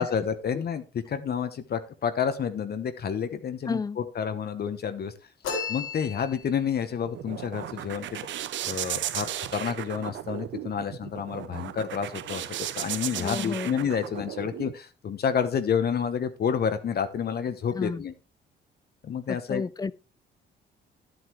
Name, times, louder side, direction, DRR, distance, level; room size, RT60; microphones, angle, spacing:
voice 1, 0.0-5.1 5.7-8.2 8.6-18.1 19.0-19.6, left 7 dB, 50° left, 1.0 m, -29 dB
voice 2, 3.7-4.0 13.1-13.7 17.7-18.0 19.3-19.9, left 4 dB, 20° left, 0.4 m, -31 dB
sound 1, 5.4-6.7, left 5 dB, 85° left, 3.5 m, -34 dB
sound 2, 6.8-14.7, right 12 dB, 70° right, 0.6 m, -35 dB
11.5 x 8.0 x 3.1 m
cardioid pair, 90°, 20 cm